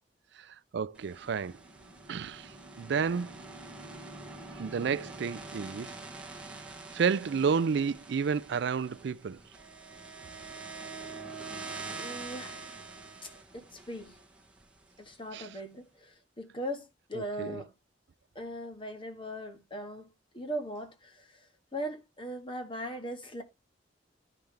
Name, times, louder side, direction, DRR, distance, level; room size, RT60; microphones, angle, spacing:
voice 1, 0.4-1.5 2.1-2.5 2.8-3.4 4.5-5.9 6.9-9.4 15.3-15.5 17.1-17.6, right 6 dB, 65° right, 0.4 m, -31 dB
sound 1, 0.9-15.1, right 3 dB, 5° right, 1.4 m, -45 dB
voice 2, 11.9-12.7 13.2-14.2 15.0-17.7 18.3-20.1 20.3-21.4 21.7-23.4, equal, 30° left, 1.6 m, -39 dB
11.5 x 5.8 x 3.3 m
head